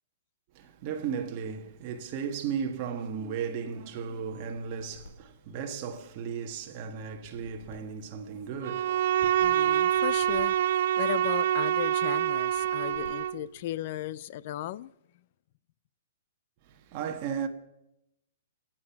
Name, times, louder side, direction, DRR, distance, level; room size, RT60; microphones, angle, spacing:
voice 1, 0.5-9.7 16.6-17.5, right 7 dB, 30° right, 1.4 m, -35 dB
sound 1, 4.2-6.2 6.9-8.8 9.5-11.5 12.2-13.6, left 3 dB, 75° left, 3.6 m, -54 dB
Bowed string instrument, 8.6-13.4, right 11 dB, 55° right, 0.5 m, -26 dB
voice 2, 9.4-10.6 11.0-14.9, left 13 dB, 40° left, 0.5 m, -36 dB
25.5 x 8.8 x 5.9 m
hypercardioid pair, 160°, 0 cm